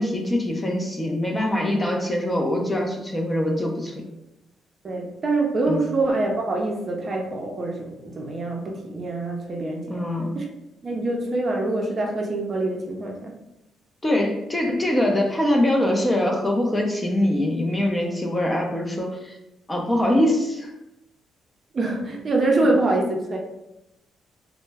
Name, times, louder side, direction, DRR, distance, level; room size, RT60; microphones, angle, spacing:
voice 1, 0.0-4.0 5.7-5.8 9.9-10.4 14.0-19.4 19.7-20.7, left 1 dB, 15° left, 1 dB, 0.5 m, -23 dB
voice 2, 4.8-10.0 10.3-10.5 10.8-13.3 21.7-23.4, right 2 dB, 40° right, 1 dB, 0.5 m, -25 dB
2.1 x 2.0 x 3.3 m, 0.89 s
cardioid pair, 90°, 0 cm